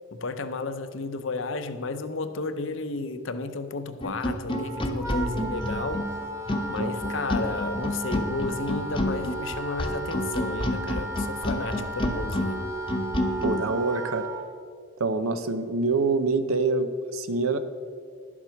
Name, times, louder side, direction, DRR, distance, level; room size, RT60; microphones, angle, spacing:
voice 1, 0.1-6.1 6.7-12.6, left 3 dB, 65° left, 10 dB, 0.7 m, -32 dB
sound 1, 4.0-13.6, left 1 dB, 25° left, 0.9 m, -29 dB
Wind instrument woodwind instrument, 4.5-14.5, right 1 dB, 15° right, 0.8 m, -36 dB
voice 2, 13.4-14.3 15.0-17.6, right 3 dB, 85° right, 11 dB, 0.8 m, -25 dB
11.5 x 7.3 x 5.8 m, 2.1 s
head